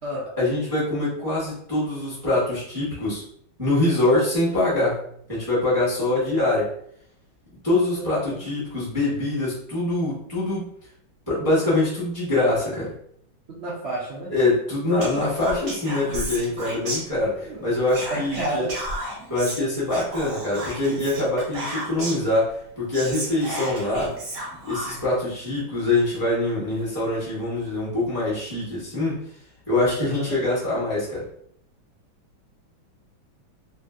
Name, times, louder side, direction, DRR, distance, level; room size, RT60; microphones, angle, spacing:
voice 1, 0.4-3.2 3.6-5.0 5.3-6.7 7.6-10.7 11.3-12.9 14.3-18.7 19.3-24.1 24.6-29.2 29.7-31.2, left 2 dB, 15° right, -9 dB, 0.8 m, -24 dB
voice 2, 8.0-8.5 13.5-14.3 15.1-15.2 15.9-16.0 17.3-17.6 18.1-18.7 30.0-30.4, right 1 dB, 75° right, -7 dB, 0.6 m, -31 dB
Whispering, 15.0-17.5 17.9-22.3 22.6-22.7 22.9-25.2, right 1 dB, 50° right, 1.1 m, -33 dB
3.2 x 2.5 x 2.5 m, 0.67 s
omnidirectional pair, 2.3 m